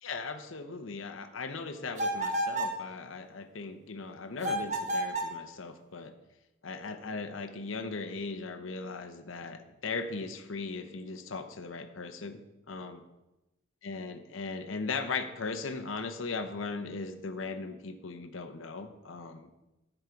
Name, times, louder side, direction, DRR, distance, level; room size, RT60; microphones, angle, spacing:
voice 1, 0.0-6.1 6.6-12.4 12.7-13.0 13.8-19.5, left 4 dB, 70° left, 7 dB, 0.8 m, -38 dB
sound 1, 2.0-2.8 4.4-5.4, right 1 dB, 35° right, 1.2 m, -31 dB
10.5 x 8.1 x 4.6 m, 0.97 s
head